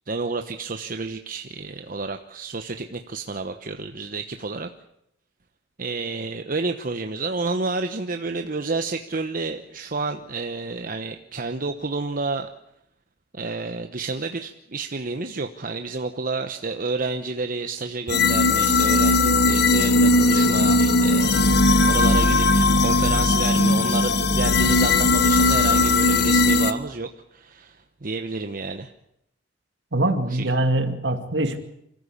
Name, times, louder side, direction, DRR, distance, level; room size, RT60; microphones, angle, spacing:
voice 1, 0.1-4.7 5.8-12.5 13.3-21.5 21.8-28.9 30.2-30.5, right 3 dB, 50° right, 7 dB, 1.0 m, -30 dB
sound 1, 18.1-26.7, left 2 dB, 60° left, 1.3 m, -18 dB
voice 2, 29.9-31.6, right 1 dB, 70° right, 8 dB, 2.3 m, -23 dB
26.5 x 14.5 x 8.5 m, 0.78 s
head